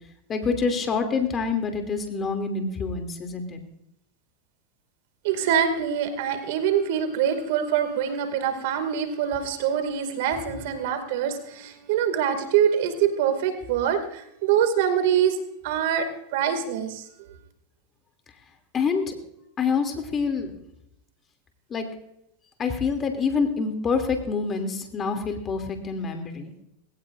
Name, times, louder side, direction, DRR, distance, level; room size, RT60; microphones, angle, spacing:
voice 1, 0.3-3.6 18.7-19.1 19.6-20.5 21.7-21.9 22.6-26.5, left 5 dB, 25° left, 5 dB, 2.8 m, -26 dB
voice 2, 5.2-15.4 15.6-16.1 16.3-17.0, right 8 dB, 70° right, 8 dB, 2.3 m, -24 dB
20.0 x 17.5 x 2.6 m, 0.77 s
hypercardioid pair, 120°, 0 cm